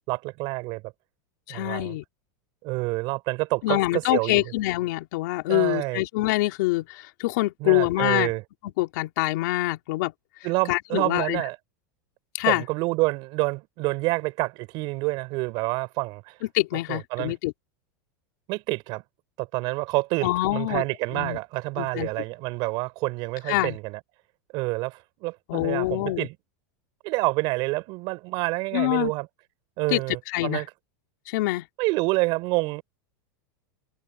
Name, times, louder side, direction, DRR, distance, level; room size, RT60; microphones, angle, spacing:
voice 1, 0.1-0.8 1.5-2.0 2.6-4.4 5.5-6.0 7.6-8.4 10.4-11.6 12.5-16.4 16.9-17.3 18.5-19.0 19.4-24.0 24.5-26.4 27.0-29.3 29.8-30.7 31.8-32.8, right 24 dB, 45° right, 4.4 m, -28 dB
voice 2, 1.5-2.0 3.6-8.3 8.8-10.1 10.7-11.4 12.4-12.6 16.5-17.5 20.2-20.8 21.1-21.4 21.8-22.1 23.5-23.8 25.5-26.3 28.7-29.1 29.9-30.0 30.3-30.6 31.3-31.7, left 19 dB, 60° left, 3.5 m, -25 dB
supercardioid pair, 150°, 11 cm